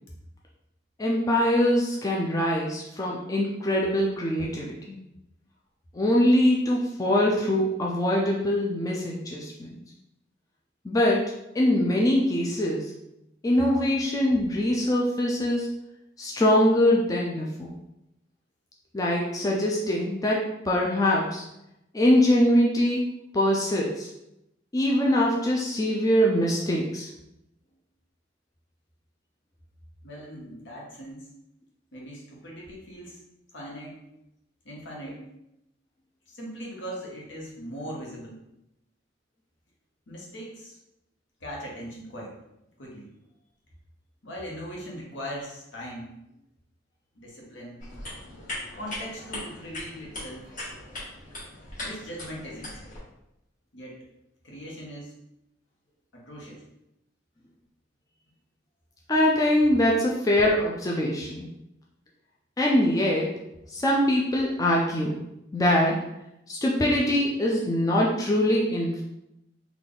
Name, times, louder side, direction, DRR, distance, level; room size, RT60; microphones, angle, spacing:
voice 1, 1.0-5.0 5.9-9.8 10.8-12.9 13.4-15.7 16.2-17.8 18.9-21.4 21.9-23.0 23.3-24.1 24.7-27.1 59.1-61.5 62.6-63.4 63.7-65.2 65.5-66.0 66.5-69.0, left 1 dB, 20° left, -3 dB, 0.3 m, -23 dB
voice 2, 30.0-31.3 31.9-33.2 33.5-34.0 34.6-35.2 36.3-38.4 40.1-40.8 41.4-42.4 42.8-43.1 44.2-46.1 47.1-47.9 48.7-50.5 51.8-52.8 53.7-54.0 54.4-55.1 56.1-56.6, equal, 70° left, -3 dB, 1.1 m, -40 dB
sound 1, 47.8-53.0, left 1 dB, 45° left, 1.4 m, -39 dB
3.4 x 2.3 x 3.8 m, 0.87 s
head